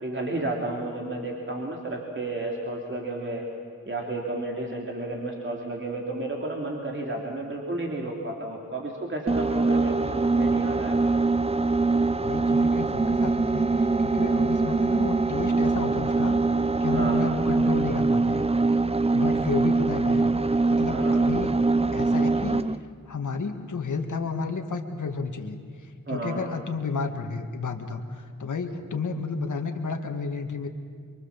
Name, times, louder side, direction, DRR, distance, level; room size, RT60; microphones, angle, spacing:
voice 1, 0.0-3.4 3.9-11.0 16.9-17.3 20.9-21.2 26.1-26.5, right 2 dB, 40° right, -1 dB, 3.3 m, -32 dB
sound 1, 9.3-22.8, right 3 dB, 20° right, 0.7 m, -23 dB
voice 2, 12.1-18.5 19.1-20.3 20.7-21.6 21.9-22.8 23.1-30.7, left 4 dB, 70° left, 4 dB, 2.0 m, -32 dB
24.5 x 24.0 x 7.4 m, 2.1 s
cardioid pair, 55°, 32 cm